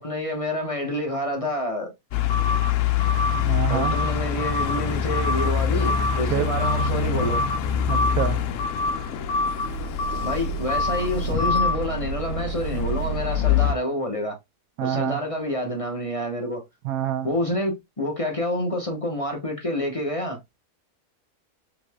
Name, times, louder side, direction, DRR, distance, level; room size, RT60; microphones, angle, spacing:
voice 1, 0.0-1.9 3.7-7.4 10.2-14.4 14.8-16.6 17.2-20.4, left 1 dB, 25° left, 1.0 m, -28 dB
sound 1, 2.1-13.7, left 5 dB, 65° left, 0.9 m, -24 dB
voice 2, 3.3-3.9 6.3-6.5 7.9-8.4 14.8-15.2 16.8-17.3, right 11 dB, 75° right, 1.1 m, -26 dB
5.2 x 3.1 x 2.2 m
omnidirectional pair, 1.5 m